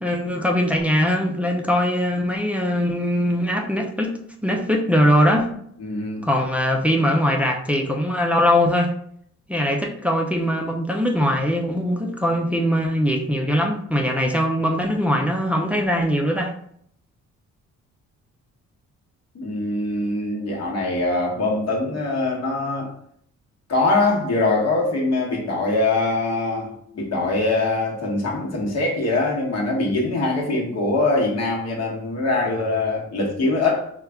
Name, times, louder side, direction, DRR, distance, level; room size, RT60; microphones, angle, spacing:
voice 1, 0.0-4.1 4.4-5.6 6.2-8.9 9.5-16.5, equal, 5° right, 1 dB, 0.4 m, -21 dB
voice 2, 5.8-6.2 19.3-22.9 23.7-33.9, left 2 dB, 55° left, -1 dB, 1.1 m, -23 dB
3.1 x 2.4 x 3.4 m, 0.66 s
cardioid pair, 90°, 30 cm